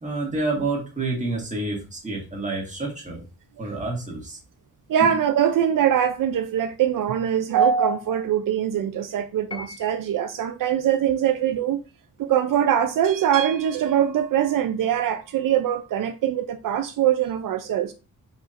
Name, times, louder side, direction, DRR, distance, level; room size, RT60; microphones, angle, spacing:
voice 1, 0.0-3.2 3.6-4.4 5.0-5.2, right 3 dB, 20° right, 1.6 m, -28 dB
voice 2, 4.9-11.8 12.2-17.9, right 9 dB, 75° right, 0.5 m, -22 dB
Piano, 9.5-10.4, left 3 dB, 15° left, 0.3 m, -40 dB
4.9 x 4.3 x 2.5 m
wide cardioid pair, 170°, 33 cm